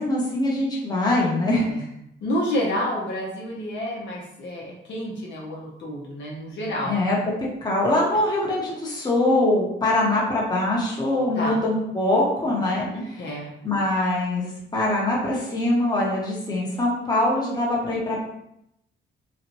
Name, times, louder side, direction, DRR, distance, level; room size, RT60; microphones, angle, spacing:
voice 1, 0.0-1.9 6.8-7.3 7.6-12.9 13.6-18.3, left 1 dB, 20° left, -4 dB, 1.0 m, -23 dB
voice 2, 2.2-7.0 11.3-11.6 12.9-13.5, equal, 65° left, -3 dB, 0.8 m, -29 dB
3.0 x 2.4 x 2.9 m, 0.79 s
cardioid pair, 90°, 20 cm